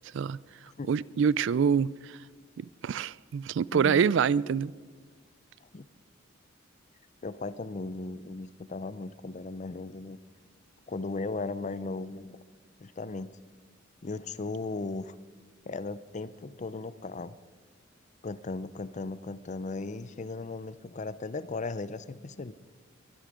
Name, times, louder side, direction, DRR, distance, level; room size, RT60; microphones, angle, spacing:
voice 1, 0.9-1.9 2.6-4.7, right 7 dB, 65° right, 22 dB, 0.4 m, -26 dB
voice 2, 3.7-4.0 5.7-5.9 7.2-10.2 10.9-12.4 12.8-13.4 14.0-15.2 15.7-17.4 18.2-22.5, left 3 dB, 40° left, 16 dB, 0.5 m, -37 dB
22.0 x 10.5 x 5.0 m, 1.5 s
head